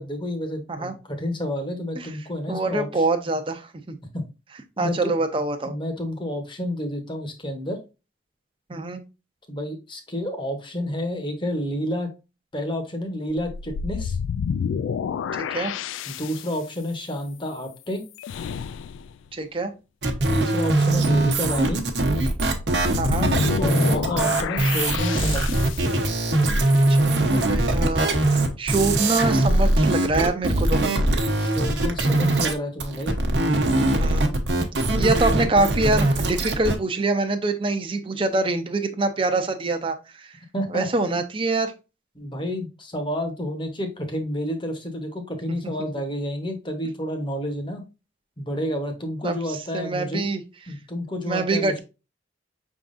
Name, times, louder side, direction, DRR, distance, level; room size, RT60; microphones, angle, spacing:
voice 1, 0.0-3.1 4.1-4.2 4.8-5.1 5.6-7.8 9.5-12.1 12.5-14.2 16.1-18.0 20.3-21.8 23.6-25.6 31.4-33.2 40.5-40.9 42.1-47.8 48.4-50.2 50.7-51.8, equal, 25° left, 5 dB, 0.9 m, -30 dB
voice 2, 2.5-4.0 4.8-5.7 8.7-9.0 15.5-15.7 19.3-19.7 23.0-23.3 26.9-30.8 34.0-34.3 35.0-40.3 40.7-41.7 49.2-49.4 49.7-50.4 51.3-51.8, right 2 dB, 25° right, 7 dB, 0.5 m, -25 dB
sound 1, 13.3-16.6 18.2-19.1 22.5-26.0, left 7 dB, 85° left, 0.3 m, -29 dB
sound 2, 20.0-32.5 32.8-36.8, right 2 dB, 65° right, 0.9 m, -21 dB
5.8 x 3.6 x 2.5 m, 0.29 s
head